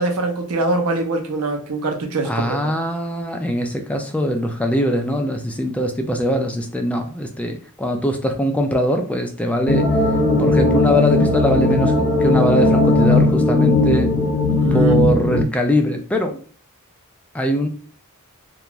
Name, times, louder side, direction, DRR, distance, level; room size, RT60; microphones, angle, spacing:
voice 1, 0.0-2.5 14.5-15.1, right 2 dB, 85° right, 5 dB, 0.6 m, -23 dB
voice 2, 2.2-9.9 10.4-14.1 14.7-16.4 17.3-17.7, equal, 5° left, 4 dB, 0.3 m, -21 dB
sound 1, 9.7-15.4, left 2 dB, 75° left, 0.8 m, -17 dB
2.5 x 2.3 x 2.9 m, 0.43 s
head